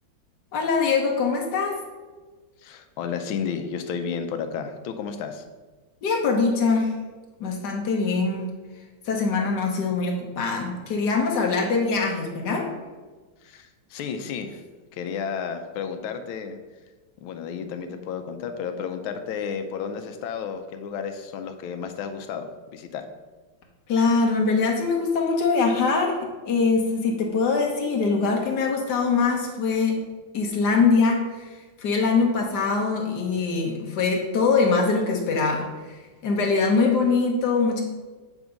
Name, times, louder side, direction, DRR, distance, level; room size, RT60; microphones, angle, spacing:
voice 1, 0.5-1.8 6.0-7.0 7.4-8.5 9.1-12.7 23.9-30.1 30.3-31.4 31.8-36.0 36.2-37.8, left 4 dB, 60° left, 0 dB, 1.6 m, -23 dB
voice 2, 2.6-5.4 13.4-14.6 14.9-16.6 17.2-23.0, left 6 dB, 80° left, 7 dB, 1.4 m, -32 dB
8.2 x 3.6 x 5.1 m, 1.3 s
omnidirectional pair, 2.3 m